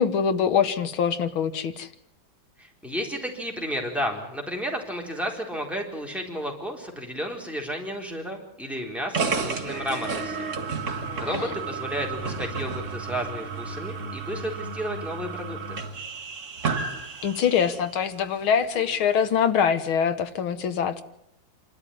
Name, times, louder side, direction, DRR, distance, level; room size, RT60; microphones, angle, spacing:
voice 1, 0.0-1.9 11.0-11.5 17.2-21.0, left 7 dB, 85° left, 10 dB, 2.2 m, -24 dB
voice 2, 2.6-10.5 11.2-15.8, equal, ahead, 1 dB, 4.0 m, -32 dB
sound 1, 9.1-17.9, right 4 dB, 40° right, 1.8 m, -32 dB
26.5 x 13.0 x 10.0 m, 0.81 s
omnidirectional pair, 2.2 m